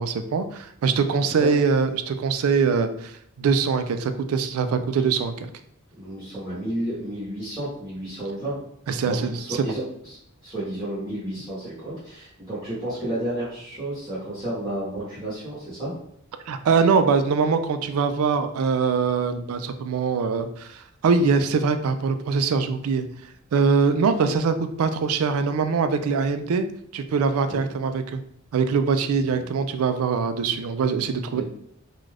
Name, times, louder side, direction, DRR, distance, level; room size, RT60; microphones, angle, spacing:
voice 1, 0.0-5.5 8.9-9.4 16.5-23.0 23.5-26.7 26.9-28.2 28.5-31.4, right 5 dB, 80° right, 9 dB, 0.3 m, -23 dB
voice 2, 6.0-8.5 9.0-10.2 10.4-15.9 27.5-27.6 31.3-31.4, right 1 dB, 15° right, -11 dB, 1.0 m, -31 dB
2.5 x 2.3 x 3.2 m, 0.71 s
head